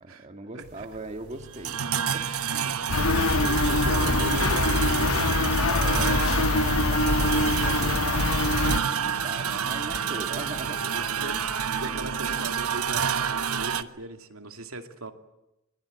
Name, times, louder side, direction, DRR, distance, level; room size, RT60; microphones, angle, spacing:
voice 1, 0.0-1.8 2.1-2.3 5.7-10.9, right 2 dB, 30° right, 4 dB, 1.9 m, -40 dB
voice 2, 0.5-0.9 2.5-5.7 6.8-6.9 10.8-15.1, right 2 dB, 70° right, 6 dB, 2.6 m, -38 dB
sound 1, 0.6-13.8, right 7 dB, 90° right, 1.2 m, -29 dB
sound 2, 2.9-8.8, left 2 dB, 70° left, 1.0 m, -24 dB
sound 3, 2.9-13.8, right 2 dB, 55° right, 2.9 m, -44 dB
24.5 x 23.0 x 9.6 m, 0.90 s
head